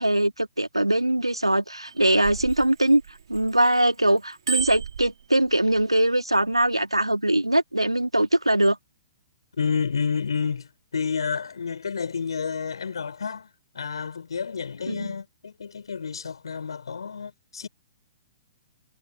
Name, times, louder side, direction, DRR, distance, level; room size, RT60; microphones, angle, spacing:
voice 1, 0.0-3.0 3.3-8.8 14.9-15.1, right 1 dB, 90° right, 2.5 m, -22 dB
Bicycle bell, 1.9-3.8 4.2-5.8 6.5-6.7, right 9 dB, 60° right, 3.3 m, -33 dB
voice 2, 9.6-13.5 13.7-17.7, left 6 dB, 65° left, 5.6 m, -30 dB
figure-of-eight pair, 115°, 3 cm